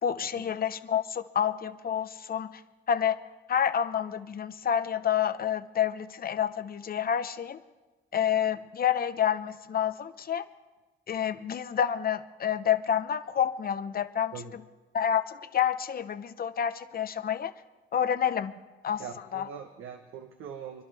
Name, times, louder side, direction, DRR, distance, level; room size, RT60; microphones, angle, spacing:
voice 1, 0.0-2.6 2.9-3.2 3.5-7.6 8.1-10.5 11.1-14.3 14.9-17.5 17.9-18.5 18.8-19.0 19.3-19.5, left 9 dB, 45° left, 12 dB, 0.8 m, -28 dB
voice 2, 19.0-20.8, right 7 dB, 75° right, 4 dB, 1.1 m, -42 dB
27.0 x 11.5 x 3.4 m, 1.2 s
cardioid pair, 95°, 21 cm